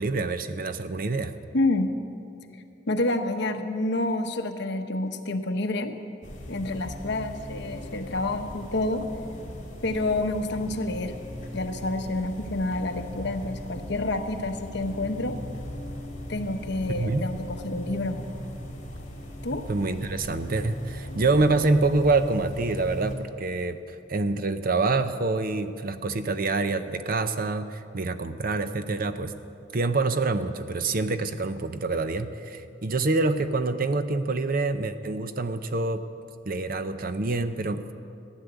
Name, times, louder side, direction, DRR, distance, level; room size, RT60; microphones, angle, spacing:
voice 1, 0.0-1.3 16.9-17.3 19.7-29.3 29.7-36.0 36.5-37.9, right 3 dB, 50° right, 10 dB, 0.7 m, -26 dB
voice 2, 1.5-2.0 2.9-5.9 6.5-9.1 9.8-11.2 11.5-15.4 16.3-18.2 19.4-19.7, left 2 dB, 65° left, 6 dB, 1.1 m, -28 dB
sound 1, 6.2-23.1, equal, 40° left, 3.3 m, -39 dB
15.5 x 10.5 x 8.1 m, 2.6 s
head